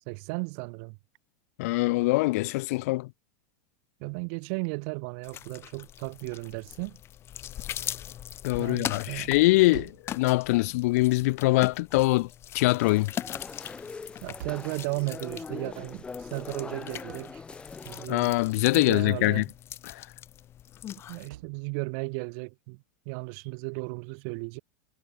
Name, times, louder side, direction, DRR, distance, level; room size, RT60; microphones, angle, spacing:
voice 1, 0.1-1.0 4.0-7.0 8.6-9.3 14.2-17.4 17.8-18.3 18.7-19.4 21.1-24.6, right 38 dB, 50° right, 5.4 m, -35 dB
voice 2, 1.6-3.1 8.4-12.3 12.5-13.1 18.1-19.4 19.9-20.0, left 21 dB, 60° left, 1.6 m, -23 dB
sound 1, 5.2-21.3, left 11 dB, 25° left, 4.0 m, -41 dB
sound 2, 9.7-10.1 11.9-12.3 14.4-14.8 17.1-17.3 19.2-19.5 21.3-21.6, right 14 dB, 80° right, 7.7 m, -44 dB
sound 3, 12.8-18.1, left 4 dB, 10° left, 3.2 m, -42 dB
supercardioid pair, 155°, 9 cm